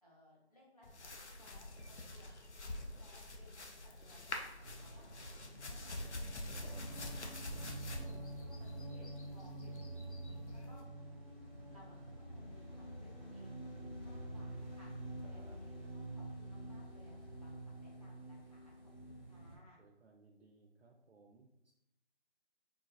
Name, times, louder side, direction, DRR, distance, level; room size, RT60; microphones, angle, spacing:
voice 1, 0.0-2.3 2.8-6.1 6.5-7.4 8.0-10.8 11.7-13.6 14.0-14.9 15.2-18.7 19.0-19.8, equal, 35° left, -6 dB, 0.8 m, -64 dB
sound 1, 0.8-10.8, left 2 dB, 75° left, 0.6 m, -47 dB
sound 2, 4.6-19.6, right 1 dB, 55° left, 1.1 m, -47 dB
voice 2, 6.5-7.0 7.6-8.3 15.2-15.6 19.8-21.7, right 3 dB, 75° right, 2 dB, 0.5 m, -63 dB
4.0 x 2.0 x 2.4 m, 0.85 s
figure-of-eight pair, 175°, 35 cm